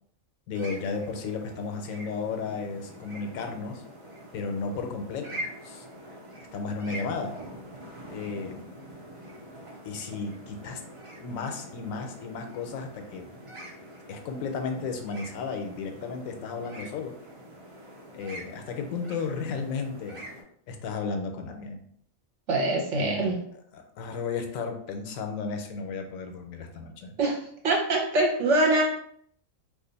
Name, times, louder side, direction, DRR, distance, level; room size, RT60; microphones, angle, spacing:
voice 1, 0.5-3.8 4.3-5.9 6.5-7.3 8.1-8.6 9.8-10.8 11.2-13.2 14.1-17.1 18.1-20.3 20.7-21.8 23.0-23.3 23.7-27.1, left 4 dB, 90° left, 5 dB, 1.0 m, -34 dB
sound 1, 0.5-20.4, right 1 dB, 40° right, 0.5 m, -44 dB
voice 2, 22.5-23.4 27.2-27.4 27.6-28.8, right 2 dB, 65° right, -1 dB, 1.2 m, -23 dB
2.5 x 2.5 x 3.9 m, 0.65 s
omnidirectional pair, 1.4 m